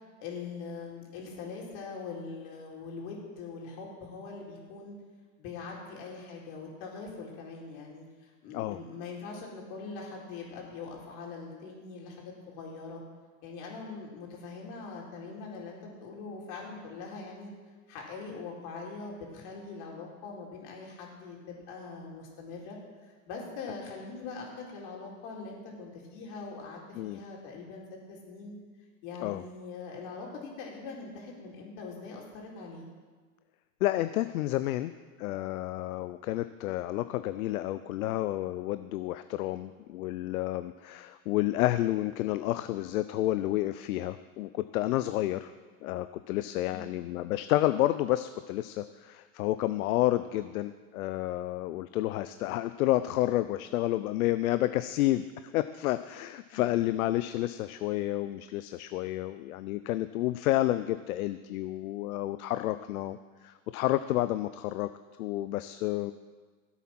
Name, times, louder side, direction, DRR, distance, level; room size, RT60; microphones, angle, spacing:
voice 1, 0.2-5.0 5.4-13.0 13.4-17.5 17.9-22.8 23.0-28.6 29.0-32.8 46.6-47.0 56.5-56.6, left 4 dB, 60° left, -1 dB, 4.3 m, -42 dB
voice 2, 33.8-34.9 35.2-45.5 45.8-55.2 55.5-63.2 63.4-64.9 65.2-66.1, left 15 dB, 75° left, 12 dB, 0.7 m, -30 dB
15.0 x 8.3 x 6.0 m, 1.5 s
hypercardioid pair, 110°, 42 cm